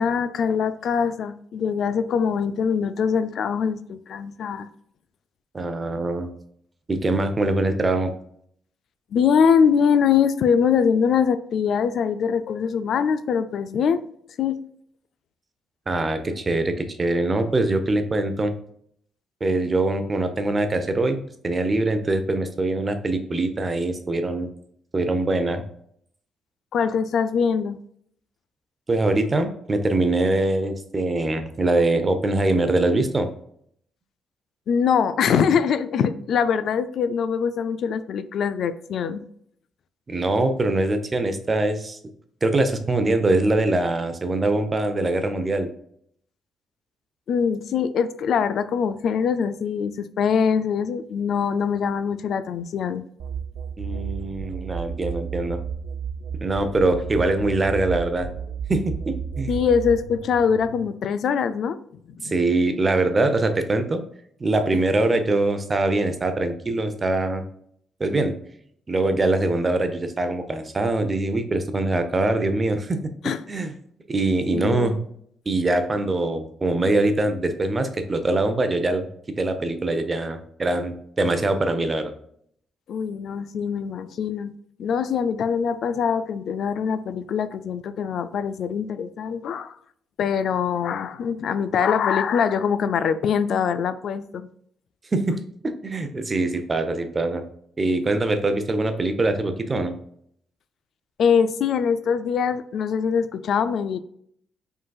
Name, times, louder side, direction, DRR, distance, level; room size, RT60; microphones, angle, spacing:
voice 1, 0.0-4.7 9.1-14.1 14.4-14.6 26.7-27.8 34.7-39.2 47.3-53.0 59.5-61.8 62.1-62.3 73.2-73.4 74.5-75.0 82.9-84.5 84.8-89.7 90.2-94.5 101.2-104.0, left 7 dB, 65° left, 12 dB, 0.3 m, -23 dB
voice 2, 5.5-6.3 6.9-8.1 15.9-18.5 19.4-24.5 24.9-25.6 28.9-33.3 40.1-42.0 42.4-45.7 53.8-55.6 56.4-58.3 58.7-59.5 62.2-64.0 64.4-67.4 68.0-68.3 68.9-73.0 73.5-73.7 74.1-75.0 75.5-79.1 79.4-82.1 95.1-95.4 95.6-97.4 97.8-99.9, right 2 dB, 30° right, 8 dB, 0.7 m, -23 dB
sound 1, 53.2-60.8, right 6 dB, 80° right, 0.5 m, -32 dB
5.1 x 3.9 x 2.3 m, 0.67 s
cardioid pair, 90°, 0 cm